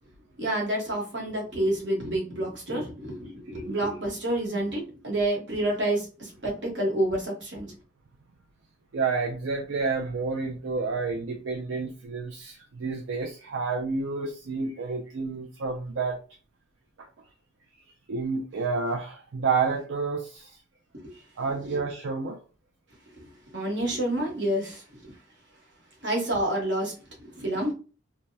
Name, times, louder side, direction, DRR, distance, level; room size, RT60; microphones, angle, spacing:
voice 1, 0.4-7.7 21.6-21.8 23.5-25.1 26.0-27.7, right 1 dB, 65° right, -2 dB, 1.1 m, -29 dB
voice 2, 8.9-16.2 17.0-17.1 18.1-20.6 21.1-22.4, right 4 dB, 80° right, 2 dB, 0.4 m, -30 dB
2.7 x 2.1 x 3.3 m, 0.36 s
head